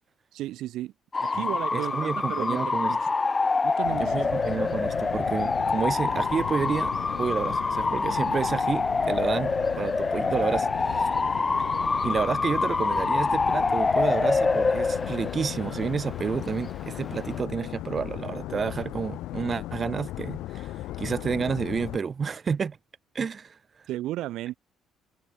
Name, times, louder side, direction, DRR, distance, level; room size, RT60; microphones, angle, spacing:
voice 1, 0.3-0.9 1.2-3.0 3.6-4.2 23.9-24.6, right 15 dB, 75° right, 4.8 m, -34 dB
Bark / Motor vehicle (road) / Siren, 1.1-17.4, left 4 dB, 20° left, 1.9 m, -26 dB
voice 2, 1.7-2.9 4.0-11.1 12.0-22.8 23.1-23.6, right 6 dB, 30° right, 3.8 m, -30 dB
sound 1, 3.8-22.0, left 15 dB, 80° left, 2.3 m, -37 dB
cardioid pair, 130°, 0 cm